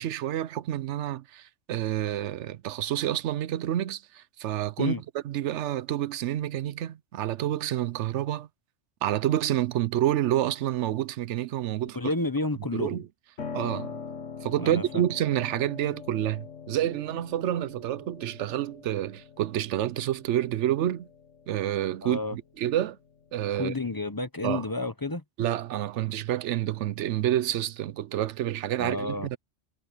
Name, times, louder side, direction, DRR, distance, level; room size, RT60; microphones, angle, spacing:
voice 1, 0.0-4.9 5.2-8.5 9.0-12.0 12.7-13.0 13.5-14.0 14.4-21.1 21.5-23.0 23.3-23.7 24.4-24.6 25.4-29.4, right 12 dB, 70° right, 0.9 m, -28 dB
voice 2, 11.9-13.0 14.6-15.0 22.0-22.4 23.6-25.2 28.8-29.3, left 3 dB, 20° left, 0.8 m, -30 dB
Piano, 13.4-23.3, left 5 dB, 75° left, 1.7 m, -43 dB
omnidirectional pair, 1.3 m